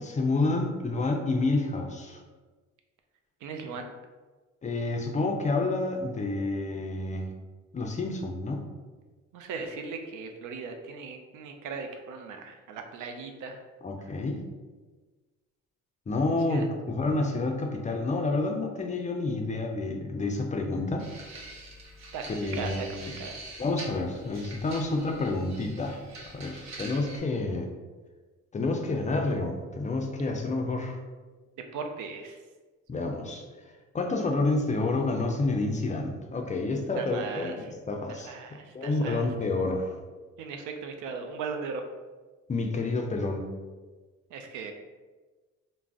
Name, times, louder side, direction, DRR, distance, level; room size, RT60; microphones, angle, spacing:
voice 1, 0.0-2.2 4.6-7.3 7.7-8.7 13.8-14.4 16.1-21.1 22.3-23.1 23.6-26.0 26.3-27.7 28.5-31.0 32.9-33.4 33.9-38.3 38.7-40.0 42.5-43.5, left 2 dB, 25° left, 2 dB, 0.4 m, -29 dB
voice 2, 3.4-3.9 9.3-13.6 16.5-16.7 22.1-22.2 22.6-22.9 23.2-23.4 31.7-32.4 37.0-37.5 38.1-39.2 40.4-41.8 44.3-44.7, right 5 dB, 85° right, 4 dB, 0.5 m, -38 dB
sound 1, 21.0-27.2, right 2 dB, 65° right, 0.8 m, -45 dB
2.4 x 2.0 x 3.4 m, 1.3 s
cardioid pair, 90°, 30 cm